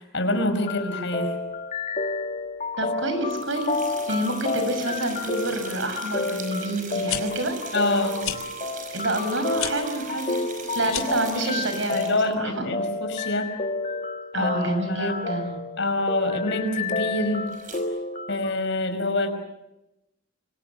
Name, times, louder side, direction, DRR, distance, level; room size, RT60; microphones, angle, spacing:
voice 1, 0.0-1.3 7.7-8.3 11.3-11.6 11.9-13.5 14.3-15.1 15.8-17.5 18.3-19.3, left 1 dB, 60° left, 7 dB, 5.5 m, -26 dB
sound 1, 0.6-18.5, left 3 dB, 35° left, 2.1 m, -30 dB
voice 2, 2.8-7.6 8.9-10.4 10.7-12.6 14.3-15.6, right 1 dB, 65° right, 8 dB, 6.1 m, -28 dB
sound 2, 3.3-12.3 17.5-17.8, right 4 dB, 40° right, 5.6 m, -40 dB
sound 3, 7.1-7.2 8.2-8.4 9.5-9.7 10.8-11.2, left 11 dB, 85° left, 3.1 m, -30 dB
27.5 x 26.0 x 7.3 m, 0.90 s
head